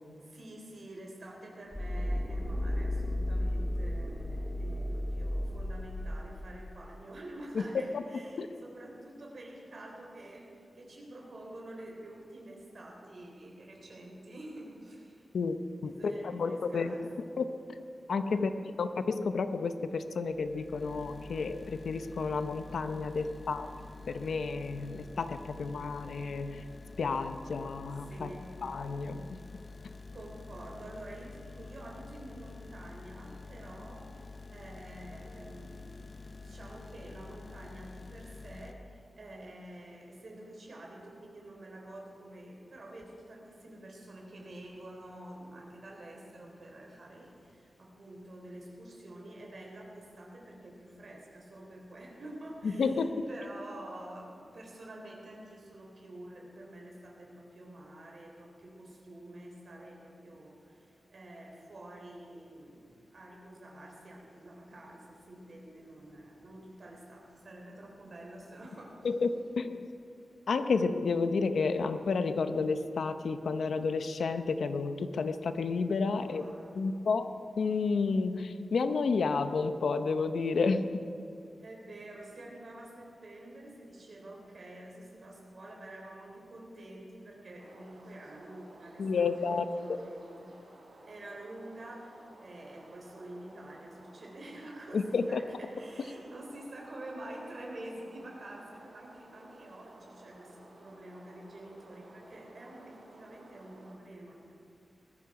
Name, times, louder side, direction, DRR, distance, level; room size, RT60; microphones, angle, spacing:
voice 1, 0.2-15.3 15.8-17.1 18.3-18.7 23.1-23.2 28.1-28.7 30.1-34.2 34.5-35.9 36.4-69.0 76.1-76.9 81.6-90.6 91.1-104.5, right 1 dB, 45° right, -1 dB, 3.8 m, -48 dB
sound 1, 1.7-6.6, left 1 dB, 5° left, 2.1 m, -33 dB
voice 2, 15.8-17.1 17.4-18.5 18.8-23.7 24.1-26.7 27.0-28.3 28.6-29.4 52.6-53.1 69.0-69.3 69.6-70.0 70.5-76.5 76.7-77.3 77.6-80.9 89.0-90.0 94.9-95.4, left 4 dB, 75° left, 9 dB, 0.8 m, -31 dB
sound 2, 20.3-38.7, left 3 dB, 35° left, 0.8 m, -48 dB
sound 3, 87.6-104.0, right 2 dB, 85° right, 3.6 m, -56 dB
20.0 x 13.5 x 4.9 m, 2.6 s
wide cardioid pair, 175°, 0 cm